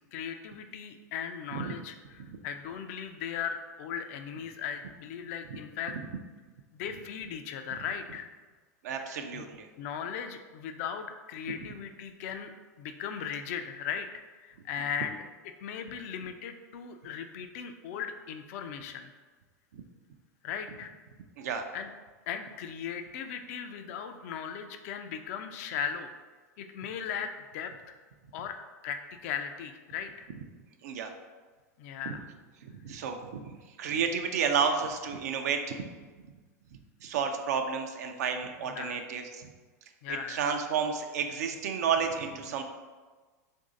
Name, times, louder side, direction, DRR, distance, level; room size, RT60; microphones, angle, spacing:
voice 1, 0.0-5.9 6.7-8.3 9.1-9.4 9.8-12.5 12.8-15.2 15.6-19.1 20.4-20.9 21.7-21.9 22.3-26.1 26.6-27.7 28.3-28.6 28.8-30.3 31.8-32.3 38.6-39.0 40.0-40.4, left 8 dB, 60° left, 7 dB, 0.4 m, -37 dB
voice 2, 8.8-9.7 19.7-19.8 21.4-21.6 30.8-31.1 32.6-35.8 37.0-39.4 40.1-42.6, right 6 dB, 70° right, 5 dB, 0.4 m, -31 dB
3.1 x 2.6 x 3.7 m, 1.4 s
hypercardioid pair, 100°, 9 cm